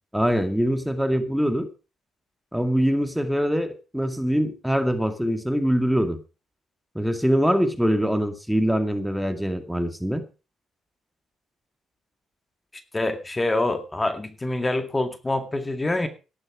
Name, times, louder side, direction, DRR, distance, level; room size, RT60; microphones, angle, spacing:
voice 1, 0.1-1.7 2.5-6.2 7.0-10.2, equal, ahead, 8 dB, 2.2 m, -23 dB
voice 2, 12.7-16.1, left 2 dB, 15° left, 8 dB, 2.1 m, -26 dB
14.5 x 11.0 x 5.0 m, 0.33 s
cardioid pair, 95°, 0 cm